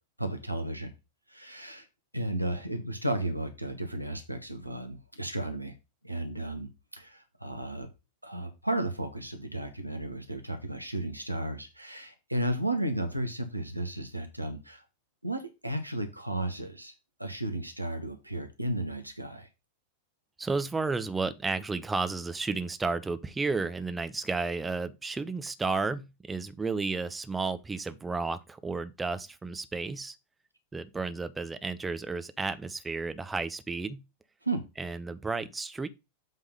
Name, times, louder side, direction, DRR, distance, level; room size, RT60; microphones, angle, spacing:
voice 1, 0.2-0.9 1.3-1.9 2.1-5.7 6.0-7.9 8.2-14.8 15.2-16.9 17.2-19.5 34.4-34.7, right 1 dB, 90° right, 1.2 m, -34 dB
voice 2, 20.4-30.2 30.7-34.0 34.8-35.9, right 4 dB, 10° right, 0.7 m, -32 dB
7.9 x 3.7 x 5.4 m
figure-of-eight pair, 90°, 0 cm